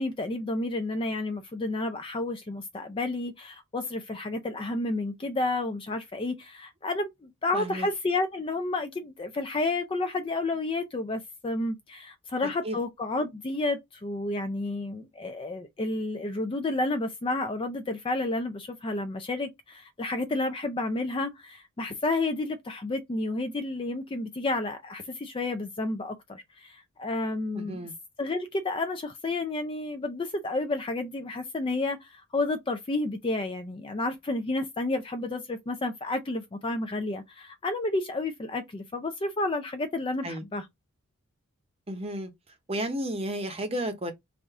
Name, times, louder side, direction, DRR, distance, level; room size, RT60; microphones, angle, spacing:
voice 1, 0.0-27.8 28.2-40.7, left 2 dB, 25° left, 0.3 m, -31 dB
voice 2, 7.5-7.9 12.4-12.8 27.5-27.9 40.2-40.4 41.9-42.3 42.7-44.1, right 1 dB, 25° right, 0.7 m, -32 dB
3.3 x 2.5 x 3.5 m
head